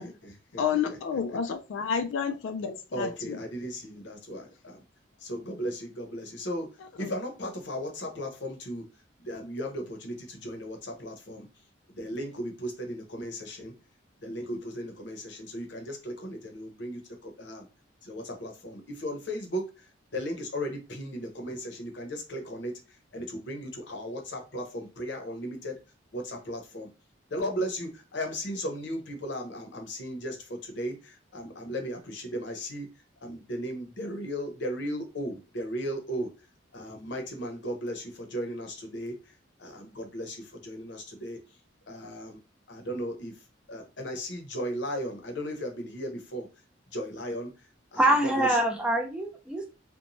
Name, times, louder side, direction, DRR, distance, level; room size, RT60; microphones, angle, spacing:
voice 1, 0.0-0.6 1.3-1.4 2.9-4.8 5.2-6.7 7.0-8.9 9.2-11.5 12.0-13.7 14.2-17.7 18.0-19.7 20.1-22.7 23.1-25.8 26.1-26.9 27.3-32.9 33.2-36.3 36.7-39.1 39.6-41.4 41.9-42.4 42.7-43.4 43.7-46.5 46.9-47.5 47.9-48.1 48.4-48.6, equal, 65° left, 0.7 m, -36 dB
voice 2, 0.6-3.4 7.0-7.1, left 7 dB, 80° left, 0.3 m, -30 dB
voice 3, 48.0-49.7, right 1 dB, 5° right, 0.4 m, -24 dB
2.9 x 2.2 x 2.6 m
head